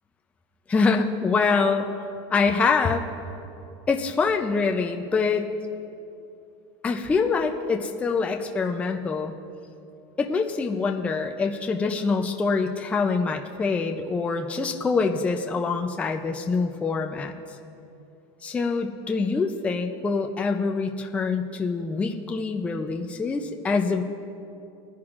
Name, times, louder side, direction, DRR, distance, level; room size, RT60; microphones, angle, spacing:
voice 1, 0.7-1.9 2.3-3.1 3.9-5.5 6.8-9.3 10.2-17.3 18.4-24.0, left 4 dB, 10° left, 3 dB, 0.4 m, -25 dB
21.0 x 10.5 x 2.5 m, 2.7 s
supercardioid pair, 165°, 14 cm